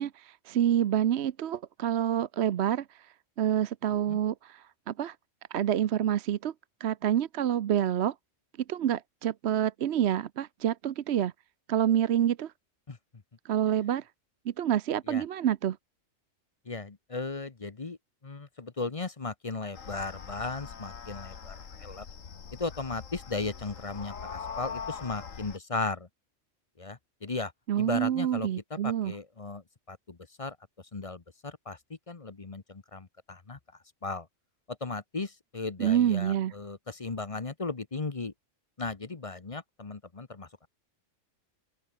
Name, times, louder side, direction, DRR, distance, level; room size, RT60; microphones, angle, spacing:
voice 1, 0.0-2.8 3.4-5.1 5.5-6.5 6.8-8.1 8.7-11.3 11.7-12.5 13.5-14.0 14.6-15.8 27.7-29.1 35.8-36.5, right 10 dB, 60° right, 0.9 m, -27 dB
voice 2, 16.7-18.0 18.2-22.0 22.6-26.1 26.8-27.5 27.8-30.6 30.9-33.6 34.0-34.3 34.7-38.3 38.8-40.7, left 3 dB, 30° left, 1.0 m, -36 dB
sound 1, 19.7-25.6, left 6 dB, 80° left, 2.0 m, -42 dB
open air
omnidirectional pair, 1.3 m